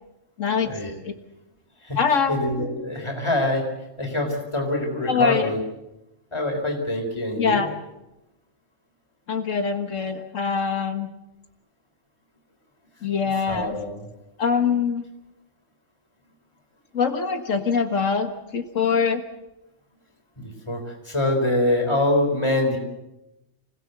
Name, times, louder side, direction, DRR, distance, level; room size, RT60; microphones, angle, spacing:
voice 1, 0.4-0.7 2.0-2.4 5.1-5.5 7.4-7.7 9.3-11.1 13.0-13.8 14.4-15.0 16.9-19.2, left 5 dB, 80° left, 6 dB, 1.9 m, -23 dB
voice 2, 2.3-3.6 4.0-5.6 6.3-7.7 13.5-14.0 20.7-22.8, left 1 dB, 20° left, 2 dB, 3.9 m, -24 dB
26.5 x 17.0 x 8.1 m, 0.95 s
omnidirectional pair, 1.3 m